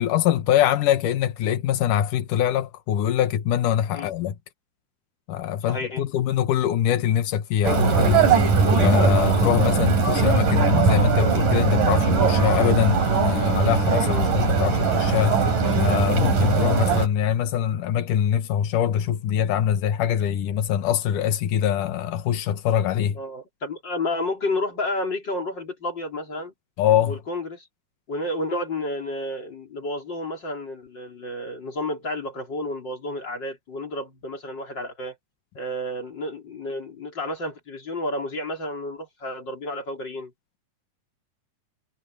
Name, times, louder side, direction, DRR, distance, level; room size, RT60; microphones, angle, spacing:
voice 1, 0.0-4.4 5.3-8.3 8.8-15.4 15.8-23.2 26.8-27.2, left 10 dB, 85° left, 2.8 m, -23 dB
voice 2, 5.7-6.0 14.0-14.3 23.1-26.5 27.0-27.7 28.1-35.2 35.6-40.3, left 1 dB, 35° left, 4.3 m, -31 dB
sound 1, 7.6-17.1, right 5 dB, 85° right, 6.5 m, -20 dB
omnidirectional pair, 3.6 m